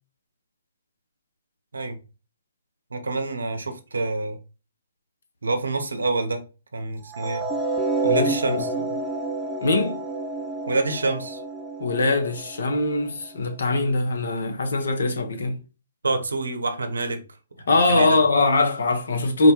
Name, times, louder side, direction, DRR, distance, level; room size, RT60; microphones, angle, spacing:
voice 1, 2.9-4.4 5.4-6.4 6.7-7.5 8.0-8.7 10.7-11.4 16.0-17.2 17.6-18.2, right 3 dB, 80° right, 0.7 m, -27 dB
sound 1, 7.1-13.4, right 2 dB, 10° right, 0.7 m, -29 dB
voice 2, 8.0-8.6 9.6-10.0 11.8-15.6 17.7-19.5, left 2 dB, 70° left, 0.8 m, -22 dB
4.1 x 2.2 x 2.9 m
figure-of-eight pair, 130°, 0 cm